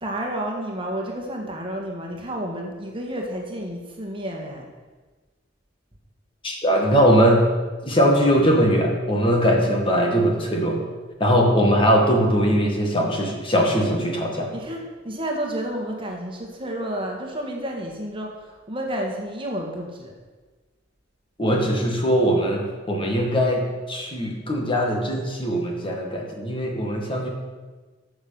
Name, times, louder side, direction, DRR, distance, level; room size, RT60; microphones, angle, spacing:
voice 1, 0.0-4.7 14.5-20.1, right 1 dB, 25° right, 0 dB, 1.8 m, -31 dB
voice 2, 6.4-7.5 7.8-10.8 11.2-14.5 21.4-27.3, equal, 25° left, 0 dB, 2.0 m, -20 dB
13.0 x 6.6 x 7.1 m, 1.3 s
head